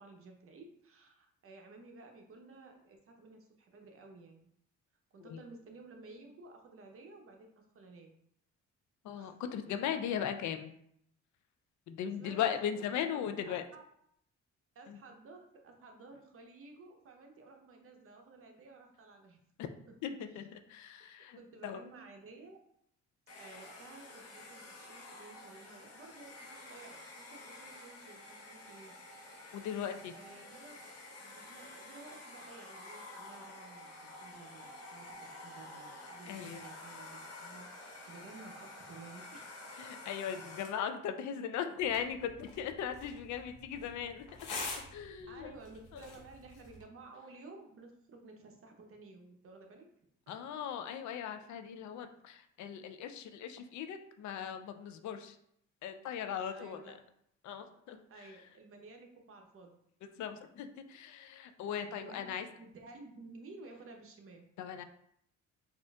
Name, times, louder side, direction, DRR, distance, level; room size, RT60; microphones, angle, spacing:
voice 1, 0.0-4.5 5.1-8.1 9.1-9.5 12.0-13.8 14.7-19.4 20.3-20.5 21.0-21.1 21.4-22.6 23.4-28.9 30.1-30.8 31.1-39.6 45.3-49.9 50.3-50.4 56.5-57.0 58.1-59.8 61.7-64.5, right 3 dB, 45° right, 3 dB, 0.7 m, -54 dB
voice 2, 9.0-10.7 11.9-13.6 14.9-15.0 19.6-19.7 20.0-21.8 29.5-30.2 36.3-36.6 39.8-44.3 44.9-45.5 45.9-46.0 50.3-55.4 55.8-56.9 57.4-58.3 60.2-62.5 64.6-64.8, left 8 dB, 70° left, 8 dB, 0.5 m, -38 dB
Domestic sounds home sounds, 23.3-40.9, left 2 dB, 50° left, 0.9 m, -50 dB
sound 1, 41.8-46.8, left 3 dB, 90° left, 0.8 m, -46 dB
4.2 x 2.5 x 2.3 m, 0.72 s
cardioid pair, 90°, 30 cm